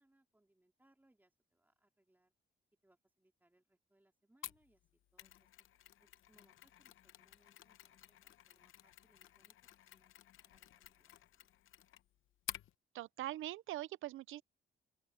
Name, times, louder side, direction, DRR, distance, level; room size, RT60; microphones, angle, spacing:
voice 1, 0.0-2.3 2.8-4.8 5.1-5.7 6.0-9.6 9.9-10.2 10.4-11.5, right 1 dB, 10° right, 3.3 m, -75 dB
Mechanisms, 4.4-12.7, left 12 dB, 80° left, 0.8 m, -53 dB
voice 2, 12.9-14.4, right 15 dB, 85° right, 0.6 m, -42 dB
open air
cardioid pair, 85°, 20 cm